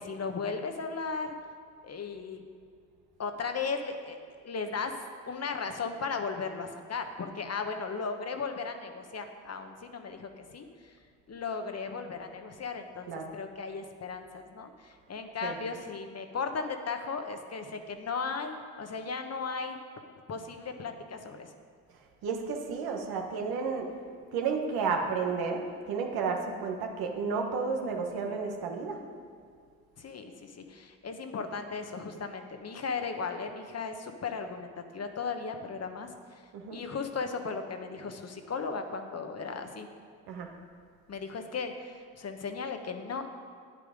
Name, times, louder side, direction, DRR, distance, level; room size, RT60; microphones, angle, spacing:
voice 1, 0.0-1.3 1.8-2.4 3.2-4.2 4.4-4.9 5.3-10.9 11.3-19.8 20.3-21.5 30.0-36.4 36.7-39.9 41.1-43.3, left 5 dB, 45° left, 6 dB, 1.2 m, -36 dB
voice 2, 22.2-23.9 24.3-25.6 25.9-29.0 36.5-36.8 40.3-40.5, right 5 dB, 75° right, 3 dB, 1.3 m, -32 dB
9.3 x 8.7 x 5.1 m, 2.1 s
hypercardioid pair, 50°, 37 cm